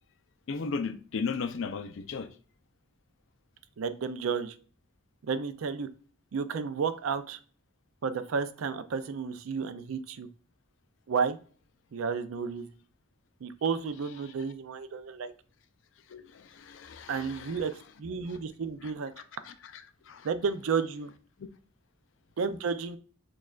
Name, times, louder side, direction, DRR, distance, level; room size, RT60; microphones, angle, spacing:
voice 1, 0.5-2.3 14.2-14.3 16.1-17.7 18.3-18.4 19.4-20.3, left 5 dB, 70° left, 0.4 m, -36 dB
voice 2, 3.8-4.5 5.2-5.9 6.3-7.4 8.0-10.3 11.1-11.4 11.9-12.7 13.4-15.3 17.1-19.1 20.2-21.1 22.4-23.0, right 5 dB, 90° right, 0.4 m, -32 dB
6.3 x 2.3 x 2.4 m
head